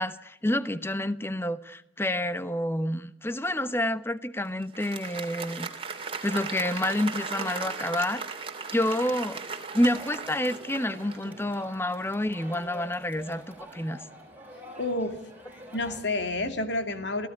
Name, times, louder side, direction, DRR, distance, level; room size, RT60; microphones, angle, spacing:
voice 1, 0.0-5.7 6.2-8.2 8.7-9.4 9.7-14.0, left 1 dB, 15° left, 1.0 m, -28 dB
Applause, 4.6-11.6, right 4 dB, 30° right, 2.9 m, -37 dB
Crowd, 9.8-16.0, right 1 dB, 10° right, 7.3 m, -47 dB
voice 2, 14.8-15.2 15.7-17.3, left 2 dB, 70° left, 2.6 m, -29 dB
28.0 x 17.0 x 9.9 m
head